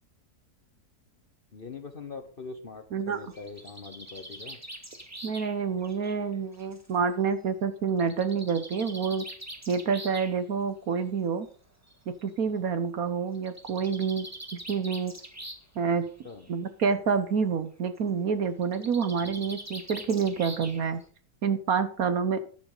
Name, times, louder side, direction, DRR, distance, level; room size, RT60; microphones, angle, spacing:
voice 1, 1.5-4.6 16.2-16.5 19.2-19.5, left 4 dB, 40° left, 6 dB, 1.0 m, -43 dB
Bird, 3.1-6.9 8.0-10.3 11.4-11.5 11.9-12.0 12.2-12.3 13.3-15.8 16.1-16.5 18.6-21.0, right 1 dB, 10° right, 1.6 m, -43 dB
voice 2, 5.2-9.3 9.7-11.5 12.1-15.1 15.8-16.1 16.5-21.0 21.4-22.4, right 6 dB, 65° right, 10 dB, 1.4 m, -28 dB
12.5 x 11.0 x 3.9 m, 0.41 s
omnidirectional pair, 1.7 m